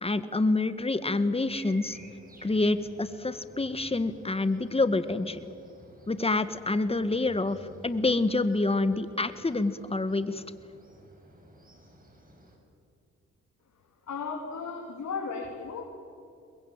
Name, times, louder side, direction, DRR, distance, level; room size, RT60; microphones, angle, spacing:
voice 1, 0.0-2.0 2.4-5.4 6.1-7.6 7.8-10.4, left 2 dB, 20° left, 12 dB, 1.7 m, -27 dB
sound 1, 1.5-12.6, right 1 dB, 30° right, 6.9 m, -54 dB
voice 2, 14.1-15.9, left 5 dB, 65° left, 1 dB, 3.2 m, -35 dB
23.0 x 21.5 x 9.0 m, 2.5 s
supercardioid pair, 60°, 29 cm